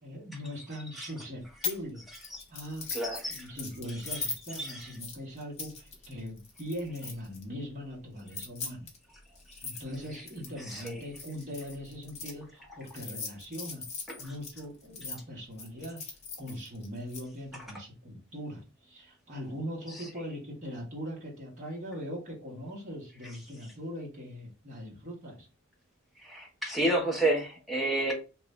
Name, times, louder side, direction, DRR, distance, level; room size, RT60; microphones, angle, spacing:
voice 1, 0.0-2.0 2.5-2.9 3.3-8.9 9.6-13.9 14.2-16.0 16.4-25.5, equal, 35° right, -3 dB, 1.4 m, -40 dB
sound 1, 1.6-1.8 2.1-7.4 8.2-12.3 12.9-15.2 15.6-17.2, left 4 dB, 30° left, 0.8 m, -40 dB
voice 2, 2.9-3.5 4.1-4.2 4.6-4.9 10.7-11.0 26.2-28.1, right 1 dB, ahead, -2 dB, 0.8 m, -30 dB
3.0 x 2.6 x 3.2 m, 0.33 s
head